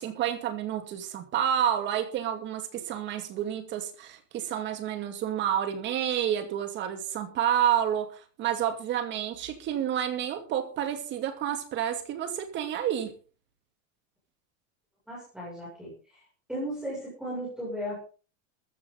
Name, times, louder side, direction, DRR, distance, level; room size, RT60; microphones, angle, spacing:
voice 1, 0.0-8.1 8.4-13.1, right 10 dB, 30° right, 7 dB, 2.4 m, -29 dB
voice 2, 15.1-15.9 16.5-18.0, equal, ahead, -6 dB, 6.8 m, -35 dB
14.5 x 14.0 x 4.0 m, 0.37 s
supercardioid pair, 170°, 38 cm